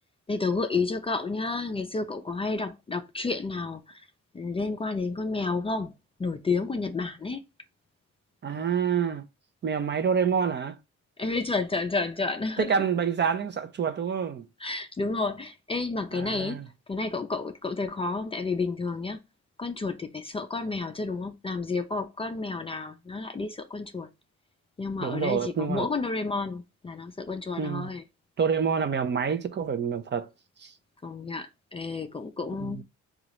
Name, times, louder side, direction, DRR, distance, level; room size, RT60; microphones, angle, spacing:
voice 1, 0.3-4.0 4.3-5.9 6.2-7.4 11.2-12.9 14.6-16.6 16.9-19.2 19.6-24.1 24.8-28.0 31.0-32.8, left 3 dB, 20° left, 0.4 m, -31 dB
voice 2, 8.4-9.2 9.6-10.8 12.6-14.5 16.1-16.6 25.0-25.9 27.6-27.9 28.4-30.3 30.6-30.7 32.6-32.8, right 6 dB, 35° right, 0.5 m, -27 dB
3.9 x 2.4 x 3.0 m
cardioid pair, 90°, 30 cm